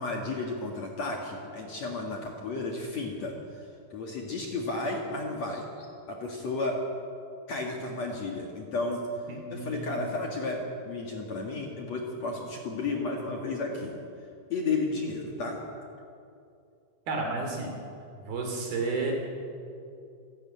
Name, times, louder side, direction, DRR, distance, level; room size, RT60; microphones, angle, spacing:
voice 1, 0.0-3.3 3.9-6.8 7.5-9.0 9.5-13.9 14.5-15.6, left 3 dB, 50° left, 0 dB, 2.6 m, -33 dB
voice 2, 9.3-10.1 17.1-17.7 18.2-19.1, right 3 dB, 60° right, 2 dB, 4.8 m, -32 dB
26.5 x 12.0 x 8.8 m, 2.5 s
omnidirectional pair, 4.9 m